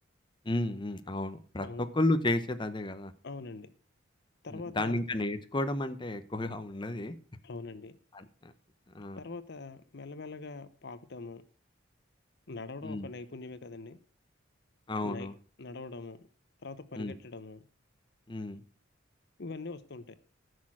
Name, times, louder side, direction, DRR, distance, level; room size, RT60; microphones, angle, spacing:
voice 1, 0.4-1.7 1.9-3.1 4.5-7.1 8.1-8.5 8.9-9.2 12.8-13.1 14.9-15.3 16.9-17.1 18.3-18.6, left 2 dB, 25° left, 9 dB, 0.8 m, -32 dB
voice 2, 3.2-3.7 4.4-5.0 7.4-8.0 9.2-11.4 12.5-14.0 15.0-15.3 15.6-16.3 16.6-17.7 19.4-20.1, left 3 dB, 55° left, 13 dB, 0.8 m, -43 dB
14.0 x 6.4 x 6.1 m, 0.42 s
head